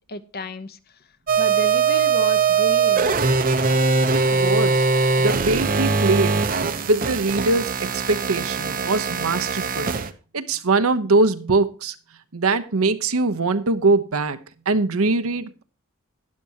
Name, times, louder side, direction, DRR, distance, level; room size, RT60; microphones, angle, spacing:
voice 1, 0.1-0.8 1.4-3.1, left 1 dB, 45° left, 0.9 m, -32 dB
sound 1, 1.3-10.1, right 5 dB, 40° right, 0.8 m, -21 dB
voice 2, 4.1-4.9 5.2-6.4 6.9-9.9 10.3-11.9 12.3-14.4 14.7-15.6, right 3 dB, 70° right, 0.9 m, -22 dB
12.0 x 10.5 x 2.9 m
head